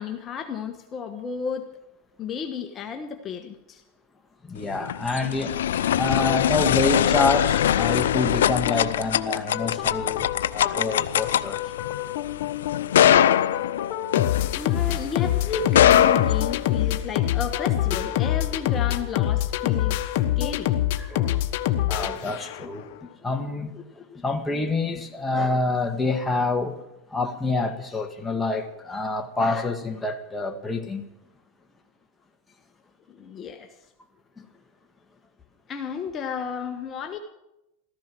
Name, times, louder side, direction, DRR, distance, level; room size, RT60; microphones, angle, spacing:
voice 1, 0.0-1.7 2.2-3.8 14.5-20.0 20.4-20.7 33.1-33.7 35.7-37.2, left 6 dB, 30° left, 5 dB, 1.3 m, -32 dB
voice 2, 4.4-11.6 21.0-21.4 21.9-26.8 27.1-31.1, left 3 dB, 10° left, 4 dB, 1.7 m, -27 dB
sound 1, 4.6-15.0 15.6-17.1, left 10 dB, 90° left, 0.6 m, -22 dB
sound 2, 6.2-22.8, left 12 dB, 60° left, 1.1 m, -27 dB
15.0 x 14.0 x 6.2 m, 0.88 s
supercardioid pair, 120°, 0 cm